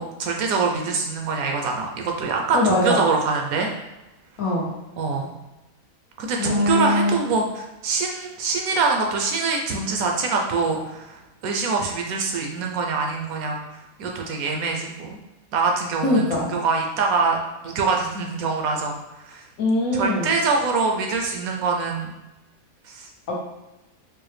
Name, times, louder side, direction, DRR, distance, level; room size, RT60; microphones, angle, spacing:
voice 1, 0.0-3.7 5.0-5.3 6.2-13.6 14.0-15.2 15.5-17.4 17.6-19.0 19.2-19.4 19.9-22.1 22.9-23.1, right 4 dB, 70° right, 1 dB, 0.9 m, -24 dB
voice 2, 2.5-3.0 4.4-4.7 6.4-7.2 16.0-16.5 19.6-20.3 23.3-23.4, left 2 dB, 65° left, -3 dB, 1.2 m, -21 dB
4.7 x 2.1 x 3.1 m, 1.0 s
omnidirectional pair, 1.6 m